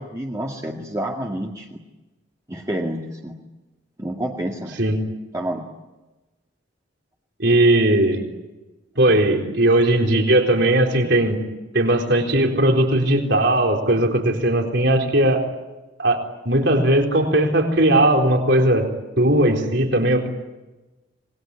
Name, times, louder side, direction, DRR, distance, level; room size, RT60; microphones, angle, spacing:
voice 1, 0.0-1.8 2.5-3.4 4.0-4.7 5.3-5.6, right 1 dB, 15° right, -1 dB, 2.1 m, -28 dB
voice 2, 7.4-8.2 9.0-11.4 11.7-15.4 16.0-16.2 16.4-18.9 19.2-20.3, right 1 dB, 60° right, 2 dB, 4.2 m, -18 dB
26.5 x 21.0 x 9.9 m, 1.1 s
head